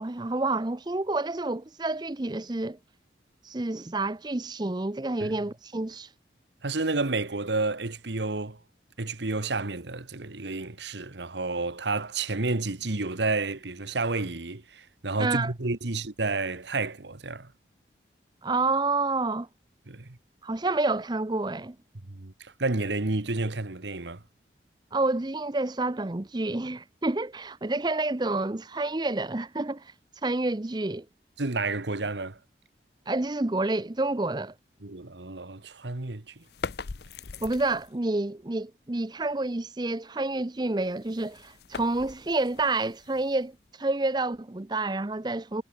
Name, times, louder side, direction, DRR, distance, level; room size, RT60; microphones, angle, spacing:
voice 1, 0.0-2.8 3.4-6.1 15.2-15.5 18.4-19.5 20.4-21.8 24.9-29.9 30.2-31.1 33.1-34.5 37.4-45.6, right 2 dB, 25° right, 0.6 m, -29 dB
voice 2, 6.6-8.6 9.0-17.5 19.9-20.2 22.1-24.2 31.4-32.4 34.8-36.3, right 3 dB, 75° right, 1.5 m, -30 dB
sound 1, 36.4-38.0 40.7-43.7, left 4 dB, 65° left, 0.6 m, -41 dB
head